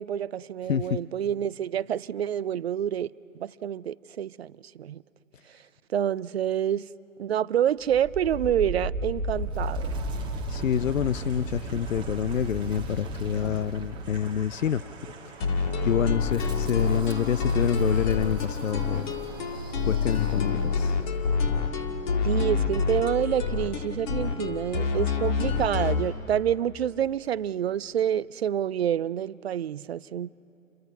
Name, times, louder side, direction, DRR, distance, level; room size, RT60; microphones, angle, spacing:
voice 1, 0.0-3.1 3.4-5.0 5.9-6.9 7.2-9.9 22.2-30.3, right 10 dB, 50° right, 0.5 m, -28 dB
voice 2, 0.6-1.0 10.5-14.8 15.2-19.1 19.8-21.0, left 9 dB, 70° left, 0.6 m, -27 dB
Wind, 7.8-20.8, right 2 dB, 10° right, 1.4 m, -36 dB
sound 1, 15.4-26.1, left 4 dB, 35° left, 1.9 m, -27 dB
29.0 x 23.0 x 5.9 m
figure-of-eight pair, 130°, 40 cm